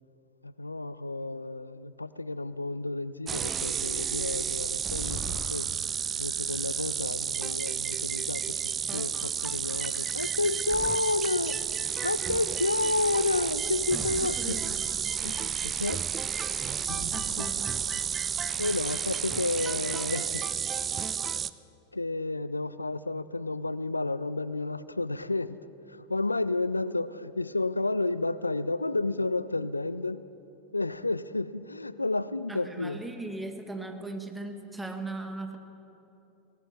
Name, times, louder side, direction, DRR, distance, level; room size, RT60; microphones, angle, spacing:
voice 1, 0.4-5.7 6.2-8.5 8.9-11.6 12.0-14.7 15.2-16.0 17.4-17.5 18.6-20.5 21.9-25.6 25.9-30.3 30.7-33.0, left 2 dB, 90° left, 17 dB, 0.3 m, -31 dB
sound 1, 3.3-21.5, right 7 dB, 25° right, 0.3 m, -31 dB
sound 2, 4.8-6.1 6.8-8.2 8.6-8.7 8.9-10.6 11.0-12.2 12.5-13.0 13.4-14.9 15.4-15.5 15.8-16.3 16.7-17.9 18.2-20.0 20.3-20.4, left 2 dB, 45° left, 3.4 m, -48 dB
voice 2, 14.4-15.4 17.1-17.8 32.5-35.6, right 2 dB, 10° right, 5 dB, 1.4 m, -39 dB
18.5 x 18.0 x 3.4 m, 3.0 s
figure-of-eight pair, 85°, 0 cm